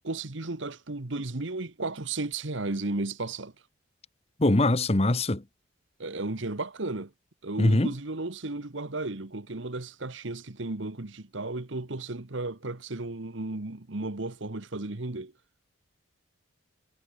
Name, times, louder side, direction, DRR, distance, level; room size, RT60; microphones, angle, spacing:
voice 1, 0.0-3.5 6.0-7.1 7.4-15.3, right 2 dB, 65° right, 1.4 m, -34 dB
voice 2, 4.4-5.4 7.6-7.9, left 2 dB, 30° left, 1.0 m, -22 dB
head